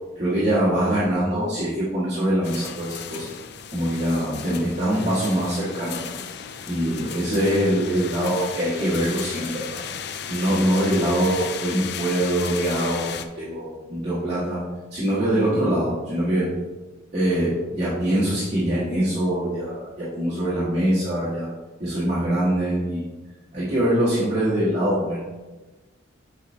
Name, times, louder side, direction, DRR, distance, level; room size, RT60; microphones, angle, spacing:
voice 1, 0.2-3.3 3.7-6.1 6.7-9.8 10.3-14.6 14.9-16.5 17.1-21.5 21.8-23.1 23.5-25.2, right 1 dB, 35° right, -12 dB, 1.9 m, -23 dB
sound 1, 2.4-13.3, left 7 dB, 55° left, 0.4 m, -35 dB
8.1 x 5.1 x 2.8 m, 1.2 s
head